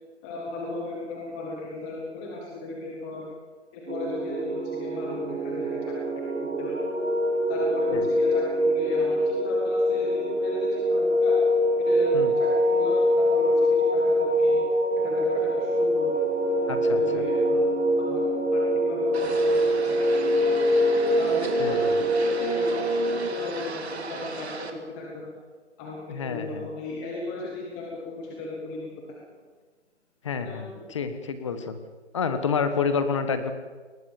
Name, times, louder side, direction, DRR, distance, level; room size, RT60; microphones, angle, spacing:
voice 1, 0.2-3.3 3.7-5.9 6.4-6.8 7.5-11.4 11.8-14.6 15.0-16.1 16.8-18.2 18.5-20.8 21.2-25.3 25.8-28.9 30.4-30.8, left 2 dB, 5° left, -2 dB, 0.9 m, -36 dB
sound 1, 3.9-23.3, equal, 90° right, 3.6 m, -24 dB
voice 2, 16.7-17.2 21.6-22.0 26.1-26.7 30.2-31.8 32.1-33.5, left 5 dB, 25° left, 9 dB, 1.5 m, -29 dB
sound 2, 19.1-24.7, right 4 dB, 65° right, 3.1 m, -37 dB
22.5 x 20.0 x 7.1 m, 1.4 s
hypercardioid pair, 170°, 35 cm